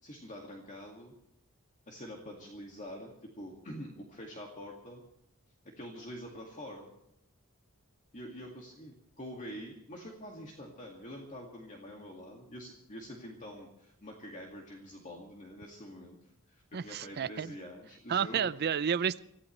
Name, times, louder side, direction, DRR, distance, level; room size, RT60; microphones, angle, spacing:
voice 1, 0.0-1.1 1.9-5.0 5.6-6.9 8.1-16.2 16.5-18.5, equal, 35° left, 0 dB, 2.2 m, -46 dB
voice 2, 16.7-17.5 18.1-19.2, right 7 dB, 50° right, 17 dB, 0.5 m, -31 dB
26.0 x 15.5 x 3.2 m, 0.78 s
head